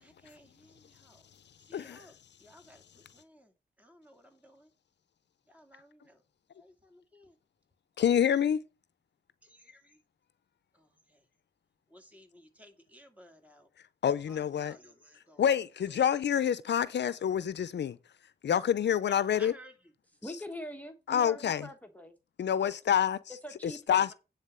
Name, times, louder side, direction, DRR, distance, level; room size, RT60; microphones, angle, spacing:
voice 1, 0.2-1.2 1.7-2.1 2.4-2.8 3.1-3.5 3.8-4.7 5.5-6.2 6.6-7.3 9.4-10.0 10.7-11.2 11.9-13.7 14.3-15.4 19.1-19.7 23.9-24.1, equal, 10° right, 2.3 m, -56 dB
voice 2, 1.7-2.2 8.0-8.6 14.0-14.8 15.1-18.0 18.4-19.5 21.1-21.7 22.4-23.4 23.6-24.1, left 9 dB, 80° left, 0.5 m, -28 dB
voice 3, 20.2-22.1 22.6-22.7 23.4-24.1, equal, 10° left, 1.1 m, -43 dB
9.6 x 3.8 x 6.7 m
cardioid pair, 55°, 18 cm